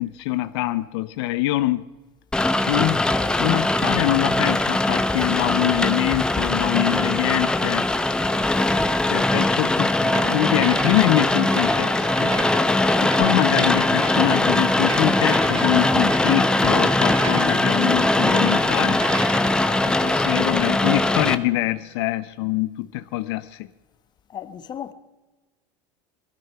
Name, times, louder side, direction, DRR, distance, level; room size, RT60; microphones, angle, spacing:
voice 1, 0.0-1.8 2.7-3.1 3.4-7.9 9.1-12.3 13.0-19.0 20.0-23.7, left 16 dB, 80° left, 0.6 m, -24 dB
Rain, 2.3-21.3, left 2 dB, 5° left, 0.7 m, -21 dB
sound 1, 10.0-21.8, right 5 dB, 50° right, 2.3 m, -35 dB
voice 2, 24.3-24.9, left 9 dB, 30° left, 1.1 m, -35 dB
19.5 x 12.5 x 5.7 m
supercardioid pair, 130°, 14 cm